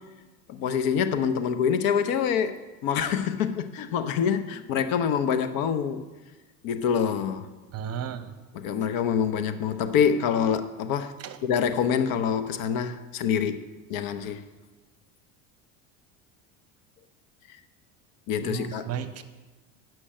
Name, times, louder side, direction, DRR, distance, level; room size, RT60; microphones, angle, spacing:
voice 1, 0.5-6.0 6.6-7.5 8.5-11.1 11.4-14.4 18.3-18.9, left 7 dB, 60° left, 10 dB, 0.9 m, -26 dB
voice 2, 7.7-8.3 11.2-11.4 18.4-19.2, right 8 dB, 40° right, 10 dB, 0.9 m, -34 dB
10.0 x 6.2 x 6.4 m, 1.2 s
supercardioid pair, 95°, 39 cm